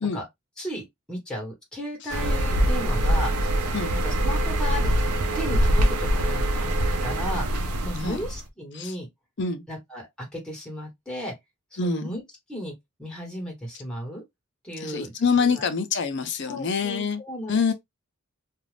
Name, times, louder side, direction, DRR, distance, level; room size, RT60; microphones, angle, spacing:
voice 1, 0.6-3.3 3.9-4.9 5.3-6.7 7.0-7.4 7.8-9.1 9.7-11.3 11.7-12.2 12.5-12.7 13.0-14.2 14.6-15.7 16.4-17.5, equal, 5° left, 1.3 m, -35 dB
sound 1, 2.1-8.4, right 1 dB, 90° right, 0.6 m, -24 dB
voice 2, 11.8-12.2 14.8-17.2 17.5-17.7, left 5 dB, 55° left, 0.6 m, -25 dB
2.4 x 2.4 x 3.3 m
head